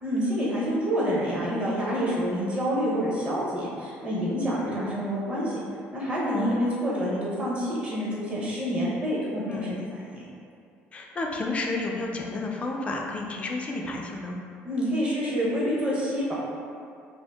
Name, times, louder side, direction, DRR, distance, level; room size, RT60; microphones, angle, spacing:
voice 1, 0.0-5.6 5.9-10.2 14.6-16.3, equal, 25° right, -6 dB, 0.8 m, -27 dB
voice 2, 10.9-14.4, left 2 dB, 25° left, 0 dB, 0.3 m, -31 dB
2.7 x 2.4 x 3.4 m, 2.4 s
cardioid pair, 140°, 5 cm